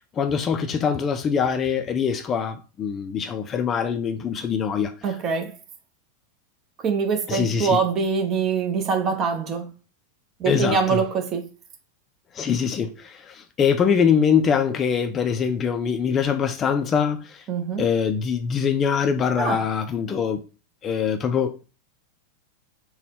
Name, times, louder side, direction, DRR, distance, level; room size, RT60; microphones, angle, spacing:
voice 1, 0.2-5.2 7.3-7.8 10.5-11.0 12.3-17.4 17.8-20.4 20.8-21.7, left 7 dB, 25° left, 0.3 m, -23 dB
voice 2, 5.0-5.5 6.8-9.7 10.4-11.4 17.5-17.8 19.4-19.6, right 5 dB, 30° right, 0.7 m, -24 dB
3.7 x 2.2 x 3.6 m
figure-of-eight pair, 90°, 0 cm